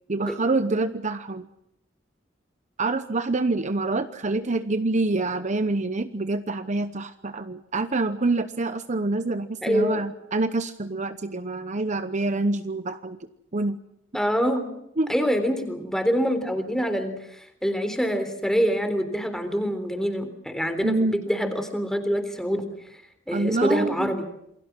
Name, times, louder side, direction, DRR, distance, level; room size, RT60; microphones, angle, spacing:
voice 1, 0.1-1.5 2.8-13.2 13.5-13.8 15.0-15.1 20.8-21.2 23.3-24.2, right 2 dB, 40° right, 11 dB, 0.9 m, -26 dB
voice 2, 9.6-10.0 14.1-14.7 15.1-22.7 23.3-24.2, equal, 5° left, 8 dB, 3.7 m, -25 dB
28.0 x 22.5 x 6.1 m, 0.79 s
head